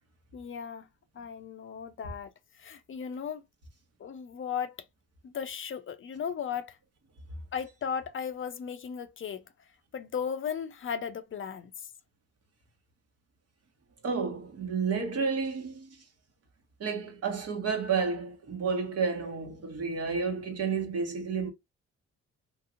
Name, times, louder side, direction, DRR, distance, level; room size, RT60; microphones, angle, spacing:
voice 1, 0.3-0.9 1.1-3.4 4.0-4.8 5.2-6.8 7.5-9.7 9.9-11.9, left 7 dB, 45° left, 0.5 m, -36 dB
voice 2, 14.0-15.9 16.8-21.5, right 5 dB, 55° right, 1.2 m, -31 dB
3.1 x 2.8 x 2.4 m
cardioid pair, 90°, 30 cm